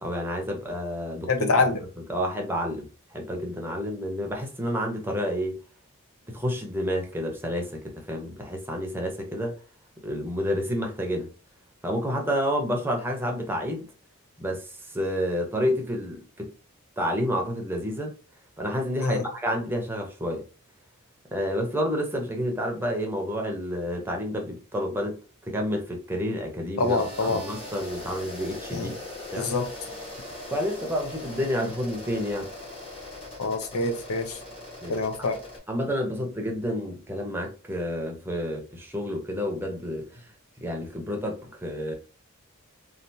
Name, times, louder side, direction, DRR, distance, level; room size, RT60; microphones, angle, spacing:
voice 1, 0.0-1.6 2.1-5.5 6.3-9.5 10.0-11.3 11.8-13.9 14.4-16.5 17.0-18.1 18.6-20.4 21.3-25.2 25.5-28.9 29.3-29.5 30.5-32.5 34.8-35.0 35.7-40.2 40.6-41.9, equal, 10° right, 0.7 m, -29 dB
voice 2, 1.3-1.8 19.0-19.2 26.8-27.4 28.7-28.9 29.4-29.7 33.4-34.4 34.9-35.4, left 3 dB, 70° left, 0.6 m, -25 dB
sound 1, 26.8-35.6, left 1 dB, 25° left, 1.2 m, -40 dB
3.2 x 2.5 x 2.7 m
head